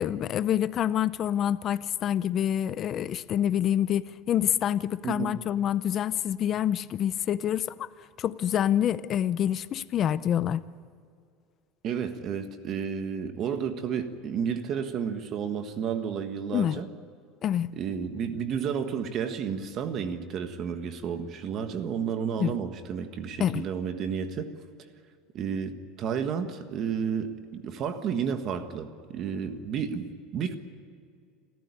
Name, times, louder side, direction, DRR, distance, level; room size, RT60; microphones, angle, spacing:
voice 1, 0.0-7.9 8.2-10.6 16.5-16.8 17.4-17.7 22.4-22.5 23.4-23.7, left 10 dB, 30° left, 16 dB, 0.6 m, -27 dB
voice 2, 5.0-5.4 11.8-16.9 17.7-24.5 25.3-30.5, right 7 dB, 35° right, 8 dB, 1.5 m, -31 dB
27.5 x 14.0 x 9.7 m, 2.3 s
cardioid pair, 170°, 0 cm